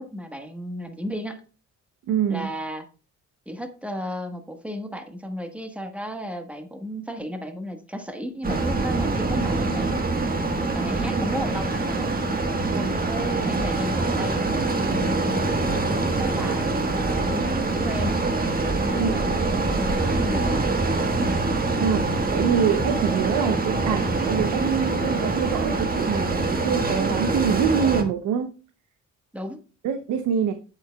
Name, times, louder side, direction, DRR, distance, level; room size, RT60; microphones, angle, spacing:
voice 1, 0.0-1.4 2.3-2.9 3.5-9.9 10.7-12.1 12.8-15.5 15.9-18.2 18.8-20.8 29.3-29.6, equal, 5° right, 5 dB, 1.3 m, -34 dB
voice 2, 2.1-2.5 12.7-12.9 19.0-19.4 21.8-28.5 29.8-30.5, right 8 dB, 90° right, 8 dB, 0.8 m, -25 dB
sound 1, 8.4-28.0, right 3 dB, 30° right, 1.5 m, -24 dB
8.6 x 7.6 x 2.3 m, 0.35 s
cardioid pair, 90°, 30 cm